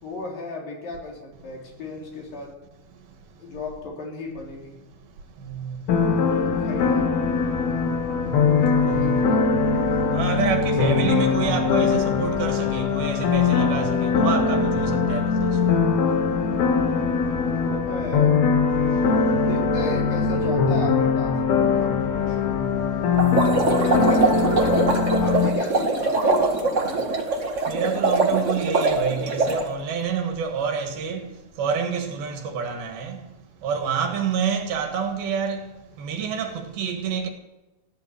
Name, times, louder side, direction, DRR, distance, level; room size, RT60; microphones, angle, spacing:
voice 1, 0.0-2.5 3.4-4.8 6.2-7.1 8.7-9.4 17.5-18.5 19.5-21.3 21.8-22.4 25.2-27.2, left 2 dB, 65° left, 5.2 m, -35 dB
voice 2, 5.4-5.8 8.2-8.4 8.9-9.3 10.1-15.5 23.2-23.4 27.7-31.2 31.6-33.2 33.6-35.6 36.0-37.3, right 6 dB, 80° right, 3.7 m, -28 dB
sound 1, 5.9-25.5, left 5 dB, 85° left, 3.6 m, -21 dB
sound 2, 23.2-29.7, right 3 dB, 30° right, 1.4 m, -22 dB
16.0 x 11.5 x 7.1 m
omnidirectional pair, 4.3 m